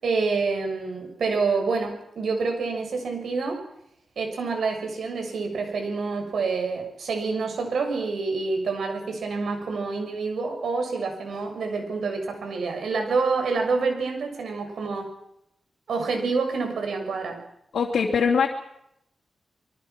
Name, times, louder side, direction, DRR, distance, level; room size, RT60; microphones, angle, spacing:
voice 1, 0.0-3.6 4.1-15.1 15.9-17.4, right 4 dB, 75° right, 4 dB, 6.7 m, -27 dB
voice 2, 17.7-18.5, left 6 dB, 90° left, -1 dB, 2.9 m, -21 dB
26.0 x 23.5 x 6.0 m, 0.78 s
wide cardioid pair, 150°, 0 cm